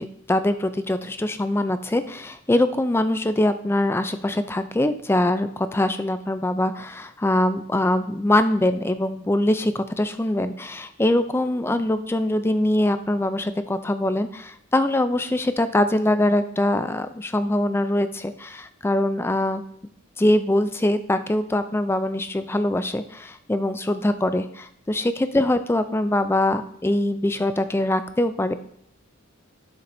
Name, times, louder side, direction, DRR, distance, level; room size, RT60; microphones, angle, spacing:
voice 1, 0.0-19.6 20.2-28.6, left 1 dB, 10° left, 10 dB, 0.4 m, -23 dB
12.0 x 6.9 x 2.6 m, 0.70 s
head